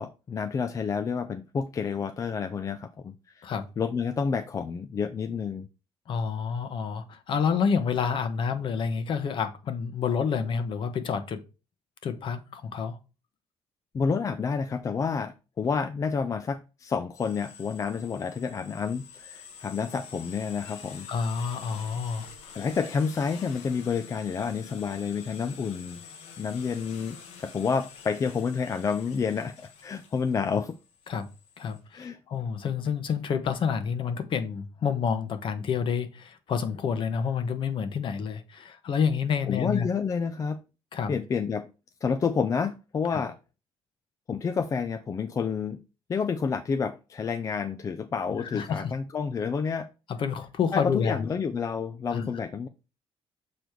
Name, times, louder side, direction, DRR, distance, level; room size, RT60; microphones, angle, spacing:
voice 1, 0.0-3.5 3.8-5.7 13.9-21.1 22.5-26.0 26.4-29.6 29.8-30.7 31.9-32.2 39.5-40.6 41.1-41.7 42.0-43.3 44.3-45.8 46.1-49.9 50.7-52.7, left 5 dB, 30° left, 0.5 m, -29 dB
voice 2, 6.1-11.4 12.0-13.0 21.1-22.6 31.1-31.3 31.6-39.9 40.9-41.1 43.1-43.2 48.4-48.9 50.2-51.3 52.1-52.4, left 6 dB, 50° left, 1.1 m, -29 dB
sound 1, 17.1-31.8, left 7 dB, 85° left, 1.4 m, -47 dB
6.7 x 4.1 x 4.6 m
cardioid pair, 135°, 11 cm